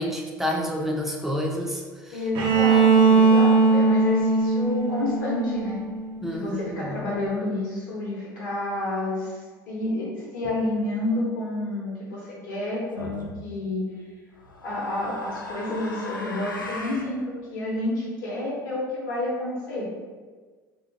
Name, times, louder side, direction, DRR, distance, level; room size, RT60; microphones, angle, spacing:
voice 1, 0.0-2.2 6.2-7.0, equal, 5° right, 0 dB, 0.4 m, -29 dB
voice 2, 2.1-5.8 6.3-9.4 9.7-13.8 14.6-19.8, left 1 dB, 65° left, -6 dB, 0.7 m, -29 dB
Bowed string instrument, 2.3-6.2, right 4 dB, 45° right, 0.6 m, -19 dB
sound 1, 13.0-13.3 14.4-17.1, left 2 dB, 90° left, 0.4 m, -37 dB
2.6 x 2.4 x 2.7 m, 1.4 s
figure-of-eight pair, 65°, 11 cm